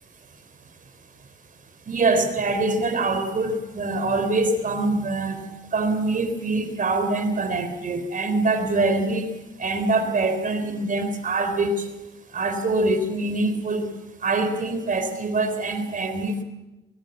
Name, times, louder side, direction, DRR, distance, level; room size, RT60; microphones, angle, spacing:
voice 1, 1.9-5.4 5.7-9.3 9.6-11.9 12.3-13.9 14.2-16.4, right 2 dB, 40° right, 8 dB, 4.1 m, -24 dB
24.0 x 21.5 x 7.3 m, 1.0 s
cardioid pair, 90°, 20 cm